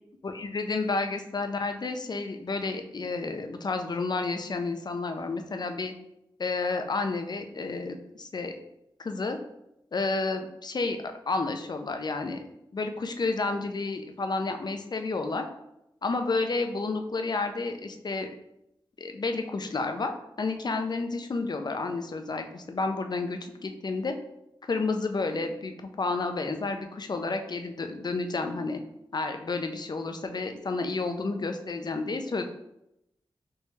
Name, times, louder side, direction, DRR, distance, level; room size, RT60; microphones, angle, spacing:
voice 1, 0.2-5.9 6.4-8.5 9.0-9.4 9.9-11.0 11.3-12.4 12.7-15.5 16.0-18.3 19.0-20.1 20.4-24.2 24.7-28.8 29.1-32.4, left 3 dB, 50° left, 6 dB, 0.5 m, -30 dB
3.4 x 2.7 x 3.1 m, 0.84 s
cardioid pair, 50°, 9 cm